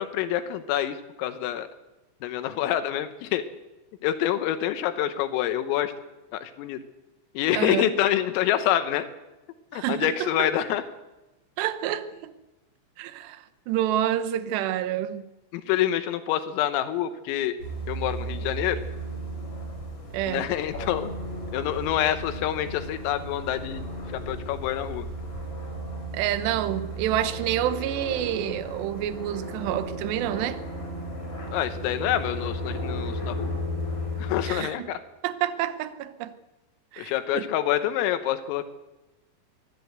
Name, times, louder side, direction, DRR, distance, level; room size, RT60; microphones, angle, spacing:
voice 1, 0.0-1.7 2.2-3.4 4.0-5.9 6.3-6.8 7.4-9.1 9.7-10.8 15.5-17.6 17.9-18.8 20.3-21.1 21.5-23.8 24.1-25.1 31.5-33.6 34.2-35.0 37.0-38.7, left 11 dB, 85° left, 3.7 m, -27 dB
voice 2, 7.5-7.9 9.7-10.1 11.6-12.3 13.0-15.2 20.1-20.5 26.1-30.6 34.5-34.7 35.2-36.3 36.9-37.4, right 11 dB, 70° right, 2.9 m, -28 dB
sound 1, 17.6-34.5, equal, 30° left, 6.1 m, -34 dB
24.0 x 16.0 x 8.1 m
omnidirectional pair, 5.9 m